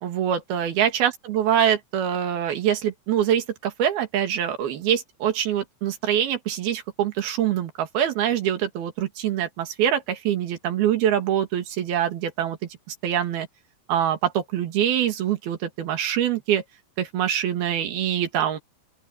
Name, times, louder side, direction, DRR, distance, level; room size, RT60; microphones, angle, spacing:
voice 1, 0.0-12.6 12.9-13.5 13.9-16.6 17.0-18.6, right 10 dB, 90° right, 4.0 m, -24 dB
open air
omnidirectional pair, 4.2 m